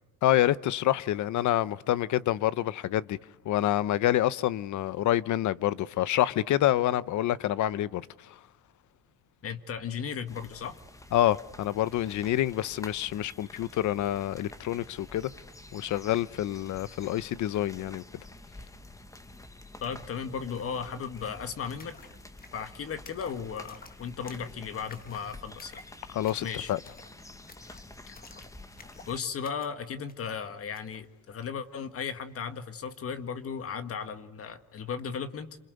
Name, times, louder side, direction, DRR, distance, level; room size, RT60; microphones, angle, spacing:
voice 1, 0.2-3.2 3.4-8.4 11.1-15.3 15.7-18.0 26.1-26.8, left 13 dB, 55° left, 0.9 m, -27 dB
voice 2, 9.4-10.8 19.8-22.0 22.5-25.8 26.4-26.7 28.1-28.2 29.1-35.6, left 6 dB, 40° left, 1.8 m, -36 dB
sound 1, 10.3-29.2, left 2 dB, 10° left, 1.3 m, -49 dB
sound 2, 20.6-20.7 20.9-31.1, left 4 dB, 25° left, 1.8 m, -54 dB
28.0 x 26.5 x 8.0 m
cardioid pair, 145°, 34 cm